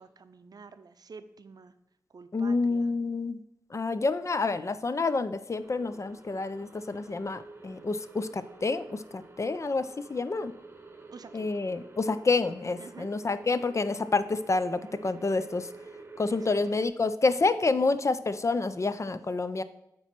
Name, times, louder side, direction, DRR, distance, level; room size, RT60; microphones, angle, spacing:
voice 1, 0.0-1.7 2.1-2.9 11.1-11.5 12.8-13.1 16.3-16.7, right 4 dB, 60° right, 10 dB, 0.5 m, -49 dB
voice 2, 2.3-3.4 3.7-10.5 11.3-15.7 16.2-19.6, left 3 dB, 45° left, 12 dB, 0.4 m, -28 dB
sound 1, 5.6-16.9, right 3 dB, 30° right, 0.9 m, -49 dB
8.7 x 3.0 x 5.8 m, 0.84 s
cardioid pair, 50°, 7 cm